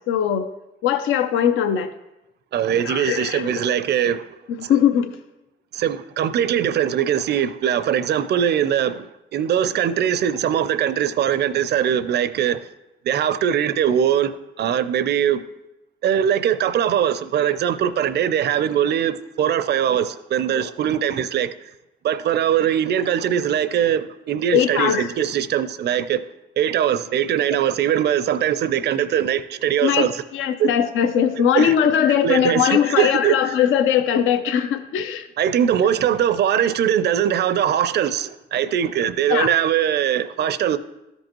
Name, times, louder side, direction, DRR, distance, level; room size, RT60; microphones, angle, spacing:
voice 1, 0.1-0.5 0.8-1.9 2.8-3.8 4.6-5.2 20.5-20.6 24.5-25.1 29.8-30.1 30.3-35.3 39.3-39.5, left 9 dB, 80° left, 0.6 m, -20 dB
voice 2, 2.5-4.2 4.6-4.8 5.7-12.7 13.0-15.4 16.0-21.5 22.0-26.2 26.6-30.2 30.6-30.7 31.5-31.7 32.2-33.3 35.4-40.8, right 9 dB, 55° right, 0.5 m, -21 dB
13.0 x 5.3 x 3.0 m
cardioid pair, 90°, 20 cm